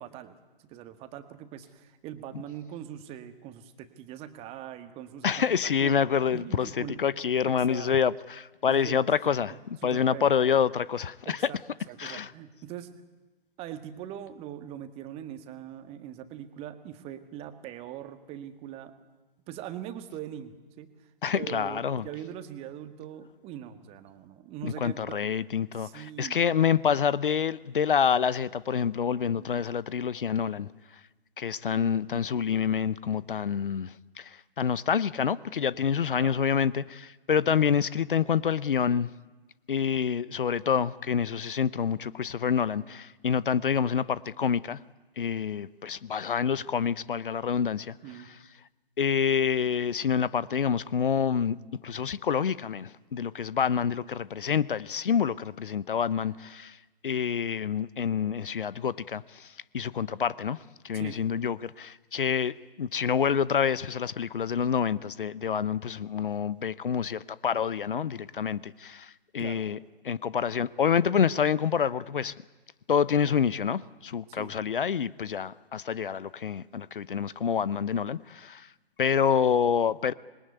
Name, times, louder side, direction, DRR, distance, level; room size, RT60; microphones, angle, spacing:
voice 1, 0.0-5.3 5.6-5.9 6.3-7.0 7.4-7.9 8.7-9.1 9.5-10.3 11.3-11.6 11.9-12.9 13.6-18.9 19.5-21.1 21.4-25.3 25.8-26.5 29.3-29.5 36.2-36.3 48.0-48.3 60.9-61.2 69.4-69.6 74.3-74.5, right 11 dB, 20° right, 1.7 m, -42 dB
voice 2, 5.2-11.5 12.0-12.3 21.2-22.0 24.6-30.7 31.4-39.1 39.7-44.8 45.2-48.0 49.0-51.6 51.8-56.8 57.0-69.8 70.0-72.3 72.9-78.7 79.0-80.1, left 7 dB, 60° left, 0.8 m, -27 dB
26.5 x 21.5 x 9.4 m
figure-of-eight pair, 130°, 29 cm